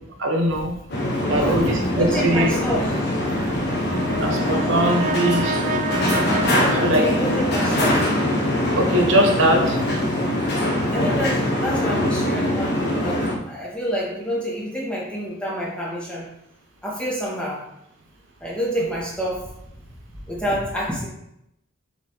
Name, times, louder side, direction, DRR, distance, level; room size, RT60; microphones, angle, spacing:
voice 1, 0.2-0.7 1.3-2.5 4.2-5.6 6.8-7.0 8.7-9.8, right 1 dB, 65° right, 1 dB, 1.1 m, -21 dB
sound 1, 0.9-13.3, left 1 dB, 55° left, 1.4 m, -23 dB
voice 2, 1.3-2.9 6.5-8.0 10.9-16.3 16.8-17.6 18.4-19.5 20.1-21.1, equal, 5° left, -5 dB, 1.9 m, -28 dB
Brass instrument, 3.6-8.1, right 2 dB, 40° right, 0.4 m, -30 dB
7.4 x 4.9 x 3.8 m, 0.80 s
head